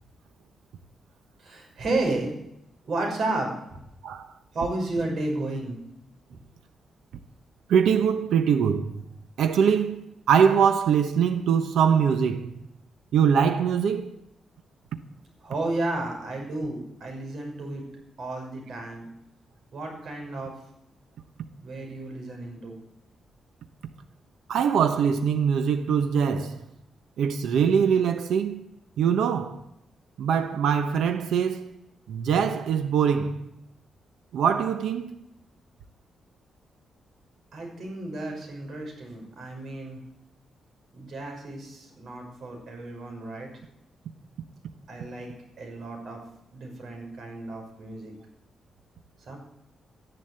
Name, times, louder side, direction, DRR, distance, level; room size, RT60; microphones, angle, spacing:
voice 1, 1.4-2.3 2.9-3.8 4.5-5.7 15.4-17.8 18.2-19.1 19.7-20.5 21.6-22.8 37.5-40.0 40.9-43.5 44.9-45.3 45.6-46.2 46.5-48.1 49.3-49.4, right 2 dB, 55° right, 5.9 m, -32 dB
voice 2, 7.7-8.9 9.4-12.5 13.1-14.1 24.5-26.6 27.2-28.6 29.0-29.6 30.2-31.7 32.1-33.4 34.3-35.2, right 7 dB, 85° right, 1.0 m, -23 dB
13.0 x 11.0 x 8.0 m
cardioid pair, 130°, 0 cm